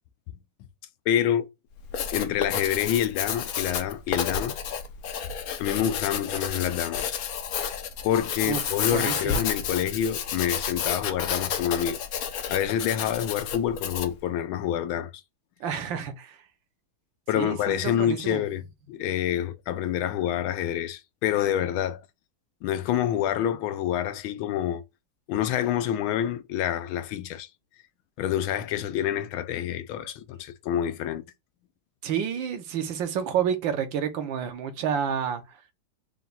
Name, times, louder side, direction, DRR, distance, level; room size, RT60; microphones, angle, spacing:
voice 1, 1.1-1.5 2.0-4.6 5.6-7.1 8.0-12.0 12.5-15.2 17.3-22.0 22.6-24.8 25.3-27.5 28.2-31.2, left 10 dB, 85° left, 1.4 m, -27 dB
Writing, 1.8-14.2, left 7 dB, 70° left, 0.9 m, -31 dB
voice 2, 8.4-9.4 15.6-16.4 17.3-18.4 32.0-35.7, right 8 dB, 75° right, 1.5 m, -30 dB
4.5 x 2.3 x 4.0 m
omnidirectional pair, 2.2 m